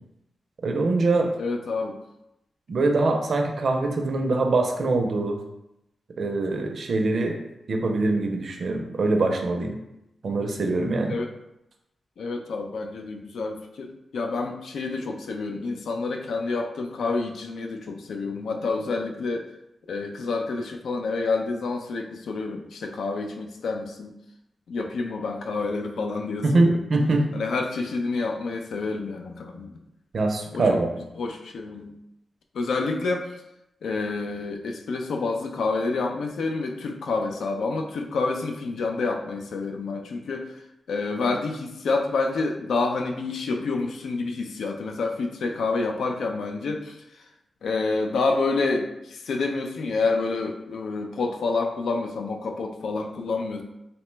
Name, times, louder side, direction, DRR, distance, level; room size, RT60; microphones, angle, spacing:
voice 1, 0.6-1.3 2.7-5.4 6.2-7.4 7.7-9.7 10.2-11.2 26.4-27.2 30.1-31.0, right 2 dB, 60° right, 3 dB, 0.4 m, -23 dB
voice 2, 1.4-2.0 11.1-11.3 12.2-19.5 19.9-24.1 24.7-26.8 27.3-29.8 30.5-30.8 31.2-31.9 32.5-33.3 33.8-40.5 40.9-47.2 47.6-53.6, left 3 dB, 90° left, 3 dB, 0.3 m, -28 dB
2.8 x 2.1 x 3.1 m, 0.86 s
wide cardioid pair, 120°, 0 cm